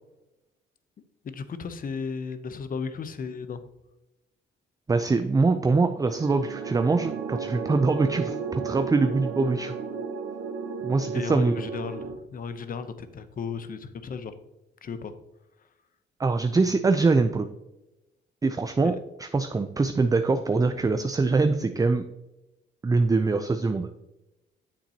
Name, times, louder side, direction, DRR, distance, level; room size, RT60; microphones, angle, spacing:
voice 1, 1.2-3.7 11.1-14.3 14.8-15.1 18.8-19.0, left 5 dB, 45° left, 11 dB, 0.8 m, -35 dB
voice 2, 4.9-9.7 10.8-11.5 16.2-17.5 18.4-22.0 22.8-23.9, right 3 dB, 15° right, 8 dB, 0.5 m, -23 dB
sound 1, 6.1-12.1, right 5 dB, 85° right, 1.0 m, -34 dB
8.8 x 7.2 x 2.9 m, 0.99 s
cardioid pair, 90°, 20 cm